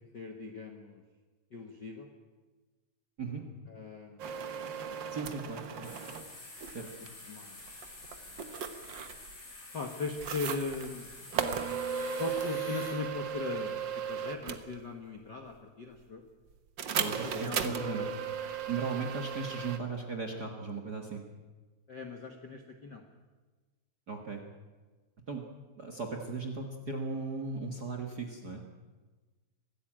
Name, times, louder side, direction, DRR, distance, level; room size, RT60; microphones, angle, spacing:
voice 1, 0.1-1.0 1.5-2.1 3.7-4.5 5.7-5.9 7.3-7.6 9.7-11.1 12.2-13.8 14.1-16.2 17.1-18.0 21.9-23.0, left 4 dB, 50° left, 4 dB, 1.3 m, -39 dB
sound 1, 4.2-6.2 6.6-7.1 7.6-9.3 10.2-10.9 11.3-14.7 16.8-19.8, right 7 dB, 70° right, 1.0 m, -36 dB
voice 2, 5.1-5.9 6.7-6.9 16.9-18.1 18.7-21.2 24.1-24.4 25.3-25.4 25.7-28.6, right 4 dB, 40° right, 4 dB, 1.5 m, -37 dB
sound 2, 5.8-12.9, left 2 dB, 85° left, 8.8 m, -48 dB
23.5 x 15.5 x 8.9 m, 1.3 s
omnidirectional pair, 4.0 m